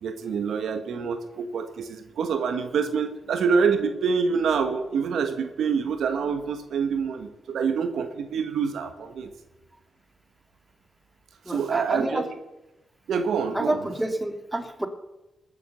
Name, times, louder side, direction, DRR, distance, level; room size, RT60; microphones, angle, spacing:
voice 1, 0.0-9.3 11.5-12.3 13.1-13.8, right 5 dB, 80° right, 7 dB, 1.4 m, -26 dB
voice 2, 11.4-12.3 13.5-14.9, right 1 dB, 10° right, 6 dB, 2.6 m, -29 dB
19.5 x 7.6 x 6.9 m, 0.98 s
supercardioid pair, 50°, 0 cm